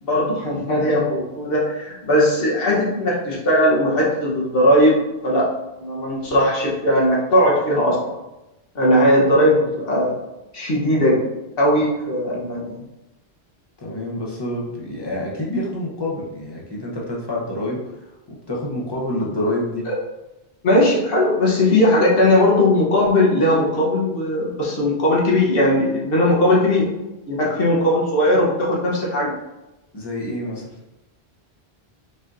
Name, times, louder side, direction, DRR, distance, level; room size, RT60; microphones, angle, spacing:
voice 1, 0.0-5.5 5.8-8.1 8.7-10.1 10.5-11.2 11.6-12.8 19.8-19.9 20.6-26.9 27.3-29.3, left 1 dB, 65° left, -4 dB, 1.2 m, -18 dB
voice 2, 13.8-19.9 29.9-30.8, left 1 dB, 25° left, -4 dB, 0.9 m, -27 dB
5.4 x 2.8 x 2.5 m, 0.99 s
omnidirectional pair, 1.1 m